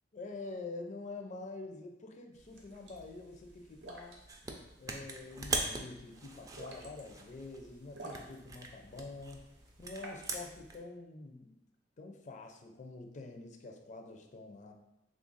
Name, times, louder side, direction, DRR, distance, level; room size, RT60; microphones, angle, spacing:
voice 1, 0.1-4.2 4.8-9.4 9.8-11.6 12.0-14.7, left 3 dB, 45° left, 3 dB, 0.4 m, -46 dB
sound 1, 2.3-10.8, right 2 dB, 80° right, 0.7 m, -53 dB
sound 2, 4.3-4.6 4.9-7.7 8.1-10.7, right 3 dB, 20° right, 0.4 m, -40 dB
3.2 x 2.5 x 3.9 m, 0.90 s
head